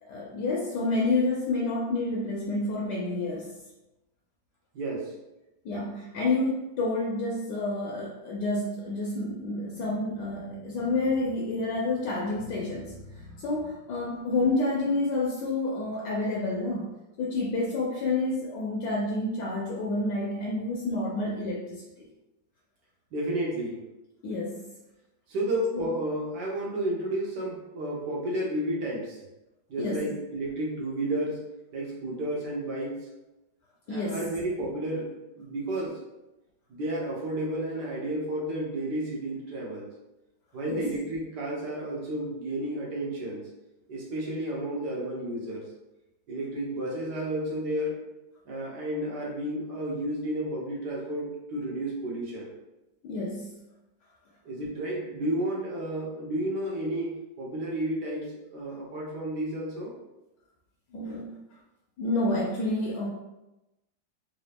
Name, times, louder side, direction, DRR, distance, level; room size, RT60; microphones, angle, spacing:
voice 1, 0.0-3.5 5.6-16.9 17.2-21.8 24.2-24.7 25.7-25.9 29.8-30.0 33.9-34.3 40.7-40.9 53.0-53.6 60.9-61.3 62.0-63.1, left 2 dB, 70° left, -3 dB, 1.2 m, -29 dB
voice 2, 4.7-5.1 23.1-23.8 25.3-29.2 29.7-31.4 31.7-32.9 33.9-35.1 35.3-36.0 36.7-39.9 40.5-43.4 43.9-45.6 46.3-48.0 48.5-52.6 54.4-57.1 57.4-59.9, right 1 dB, 65° right, -3 dB, 1.6 m, -31 dB
3.8 x 2.7 x 3.5 m, 0.96 s
omnidirectional pair, 2.1 m